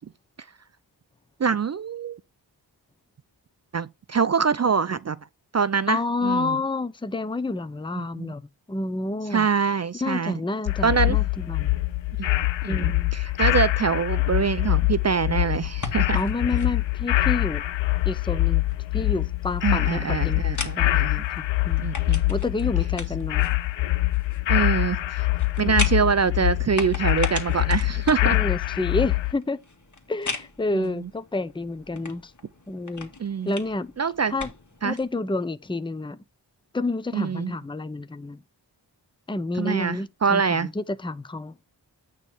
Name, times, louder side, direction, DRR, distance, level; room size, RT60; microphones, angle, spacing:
voice 1, 1.4-2.2 3.7-5.2 5.5-6.6 8.0-8.3 9.3-10.3 10.8-11.2 12.2-12.3 12.6-16.2 19.6-21.2 21.8-22.3 24.5-25.3 25.6-28.4 33.2-33.5 34.0-34.3 34.8-35.0 37.1-37.5 39.6-40.7, right 6 dB, 40° right, 0.5 m, -24 dB
voice 2, 5.9-8.4 8.7-9.5 10.0-11.8 12.7-13.1 16.1-17.6 18.0-18.6 18.9-21.9 22.3-23.5 25.6-25.8 28.2-29.6 30.1-32.3 32.7-33.1 33.5-33.9 34.3-34.5 34.8-36.2 36.7-38.4 39.3-41.5, left 2 dB, 10° left, 0.6 m, -29 dB
sound 1, 10.7-29.3, left 17 dB, 80° left, 0.6 m, -24 dB
sound 2, 15.6-35.1, left 3 dB, 40° left, 1.9 m, -39 dB
8.9 x 3.2 x 5.4 m
cardioid pair, 45°, 44 cm